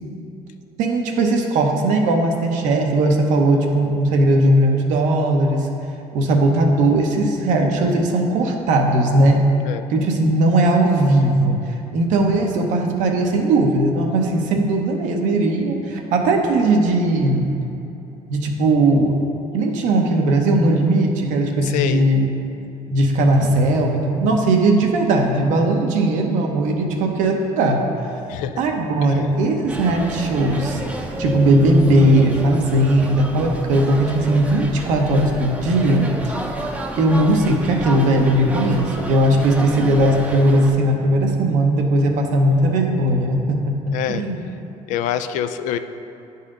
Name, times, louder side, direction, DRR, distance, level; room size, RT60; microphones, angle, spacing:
voice 1, 0.8-5.7 6.1-9.4 9.9-11.6 11.9-17.6 18.3-19.1 19.5-22.3 22.9-27.8 28.6-30.8 31.2-36.1 37.0-44.5, right 1 dB, 80° right, 2 dB, 0.9 m, -18 dB
voice 2, 21.6-22.1 28.3-28.6 29.1-29.2 43.9-44.3 44.9-45.8, left 10 dB, 80° left, 10 dB, 0.4 m, -25 dB
sound 1, 29.7-40.7, right 1 dB, 10° right, 0.6 m, -30 dB
9.8 x 4.2 x 3.7 m, 2.9 s
cardioid pair, 125°, 13 cm